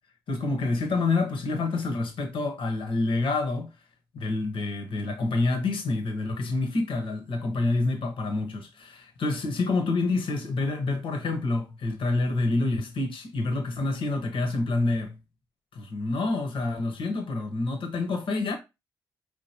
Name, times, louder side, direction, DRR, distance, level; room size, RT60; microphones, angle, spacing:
voice 1, 0.3-3.7 4.1-15.2 15.7-18.6, left 3 dB, 65° left, 1.1 m, -27 dB
4.8 x 3.7 x 2.9 m
hypercardioid pair, 40°, 9 cm